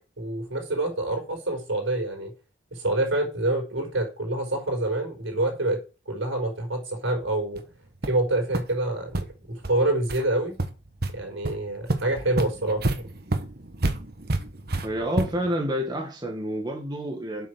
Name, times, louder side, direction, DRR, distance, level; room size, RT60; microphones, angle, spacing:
voice 1, 0.2-2.3 2.7-5.8 6.1-7.6 8.1-10.6 11.1-13.1, right 2 dB, 80° right, 4.8 m, -27 dB
sound 1, 7.5-7.6 8.0-8.2 8.5-8.6 9.1-9.2 9.6-9.7 10.1-10.2 10.6-11.1 11.4-11.5 11.9-15.5, right 2 dB, 50° right, 1.3 m, -28 dB
voice 2, 14.8-17.5, equal, 20° right, 1.8 m, -29 dB
8.1 x 6.4 x 6.3 m
head